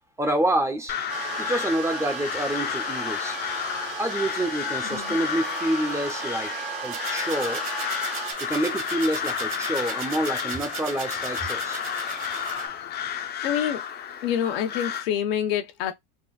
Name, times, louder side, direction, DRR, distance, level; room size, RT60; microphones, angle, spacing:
voice 1, 0.2-0.9 1.4-3.4 4.0-6.5 6.8-7.6 8.4-11.8, right 1 dB, 10° right, 0.6 m, -27 dB
Crow, 0.9-15.0, left 9 dB, 35° left, 0.6 m, -32 dB
sound 1, 1.1-8.3, right 6 dB, 80° right, 1.7 m, -36 dB
voice 2, 4.8-5.2 13.1-13.8 14.2-15.9, left 9 dB, 90° left, 1.0 m, -27 dB
sound 2, 4.8-12.7, right 5 dB, 45° right, 1.4 m, -38 dB
3.9 x 2.4 x 2.2 m
supercardioid pair, 125°, 29 cm